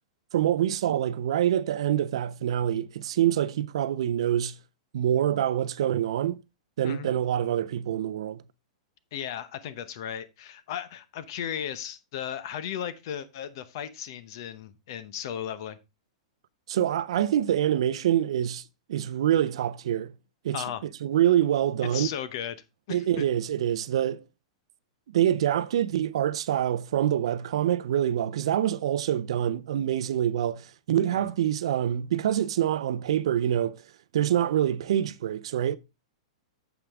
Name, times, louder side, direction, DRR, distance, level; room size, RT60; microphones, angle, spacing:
voice 1, 0.3-4.5 4.9-6.4 6.8-8.4 16.7-18.6 18.9-20.1 20.4-20.6 21.0-22.1 22.9-24.2 25.1-33.8 34.1-35.8, right 11 dB, 60° right, 0.6 m, -25 dB
voice 2, 9.1-15.8 20.5-20.8 21.9-22.5 22.9-23.2 31.1-31.3, left 9 dB, 40° left, 0.9 m, -36 dB
8.6 x 7.2 x 3.6 m
supercardioid pair, 175°, 3 cm